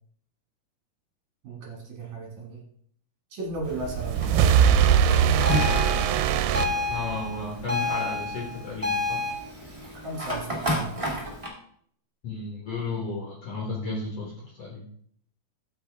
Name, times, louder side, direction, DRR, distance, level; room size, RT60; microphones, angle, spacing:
voice 1, 1.4-2.6 3.3-4.6 5.2-5.9 10.0-10.9, right 2 dB, 55° right, -1 dB, 3.0 m, -36 dB
Fire, 3.6-11.5, equal, 15° right, 1.2 m, -34 dB
sound 1, 3.6-7.4, right 8 dB, 85° right, 2.6 m, -21 dB
sound 2, 5.4-9.3, left 3 dB, 10° left, 3.1 m, -29 dB
voice 2, 6.9-9.2 12.2-14.9, left 3 dB, 55° left, -2 dB, 1.9 m, -33 dB
13.5 x 5.7 x 3.5 m, 0.63 s
omnidirectional pair, 4.5 m